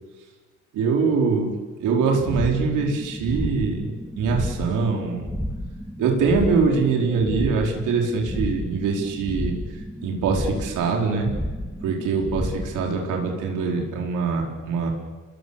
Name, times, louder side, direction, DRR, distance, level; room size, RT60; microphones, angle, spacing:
voice 1, 0.7-5.3 6.0-9.6 10.0-11.3 11.8-14.9, right 4 dB, 90° right, 0 dB, 4.6 m, -23 dB
sound 1, 2.1-13.9, equal, ahead, 1.7 m, -32 dB
29.5 x 20.5 x 7.2 m, 1.4 s
cardioid pair, 90°, 30 cm